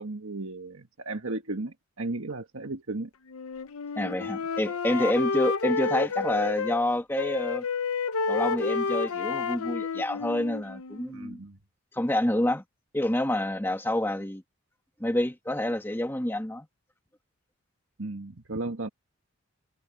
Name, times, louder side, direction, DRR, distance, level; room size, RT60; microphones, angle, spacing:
voice 1, 0.0-3.1 11.1-11.6 18.0-18.9, right 2 dB, 70° right, 1.6 m, -35 dB
Wind instrument woodwind instrument, 3.3-6.8 7.2-11.2, left 5 dB, 90° left, 0.8 m, -30 dB
voice 2, 3.9-7.7 8.3-11.4 11.9-12.6 12.9-14.4 15.0-16.7, left 1 dB, 10° left, 1.5 m, -28 dB
head